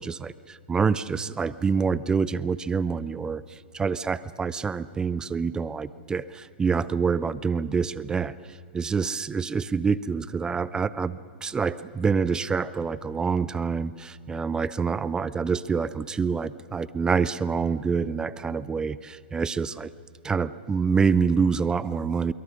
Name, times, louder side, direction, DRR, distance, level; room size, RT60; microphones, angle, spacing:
voice 1, 0.0-19.9 20.2-22.3, right 5 dB, 15° right, 18 dB, 0.5 m, -26 dB
25.5 x 22.5 x 6.4 m, 2.5 s
hypercardioid pair, 120°, 6 cm